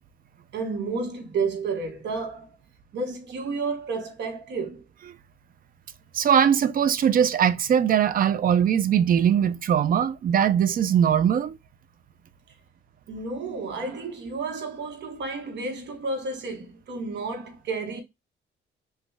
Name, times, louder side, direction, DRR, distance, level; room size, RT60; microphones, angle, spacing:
voice 1, 0.5-2.5 2.9-4.8 13.1-18.0, right 4 dB, 60° right, 1.0 m, -31 dB
voice 2, 6.1-11.6, right 8 dB, 45° right, 0.4 m, -21 dB
3.0 x 2.2 x 3.3 m
cardioid pair, 90°, 20 cm